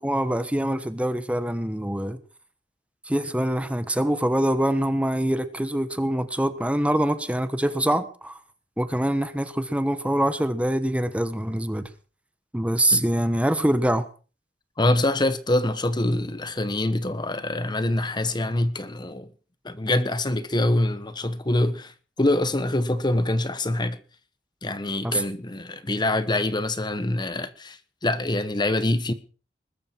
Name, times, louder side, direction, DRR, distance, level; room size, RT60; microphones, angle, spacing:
voice 1, 0.0-2.2 3.1-8.3 8.8-11.9 12.5-14.0 25.0-25.2, right 1 dB, 10° right, 1.1 m, -24 dB
voice 2, 14.8-19.3 19.6-24.0 24.6-29.1, left 1 dB, 25° left, 1.1 m, -25 dB
20.5 x 13.0 x 4.6 m
head